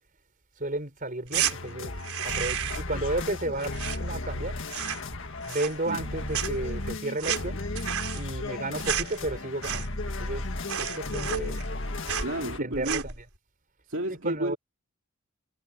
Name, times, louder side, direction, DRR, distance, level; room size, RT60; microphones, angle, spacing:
voice 1, 0.6-1.9 2.2-4.6 5.5-7.6 8.1-10.5 10.8-11.6 12.6-13.1 14.1-14.6, right 2 dB, 40° right, 4.9 m, -33 dB
sound 1, 1.3-12.6, left 2 dB, 55° left, 1.8 m, -35 dB
sound 2, 1.3-1.5 2.0-2.9 3.2-4.4 4.6-5.1 5.4-6.1 6.3-10.1 10.4-10.5 10.7-11.8 12.1-12.3 12.7-13.2, right 9 dB, 70° right, 4.3 m, -32 dB
voice 2, 12.2-13.0 13.9-14.6, right 1 dB, 55° right, 3.5 m, -31 dB
head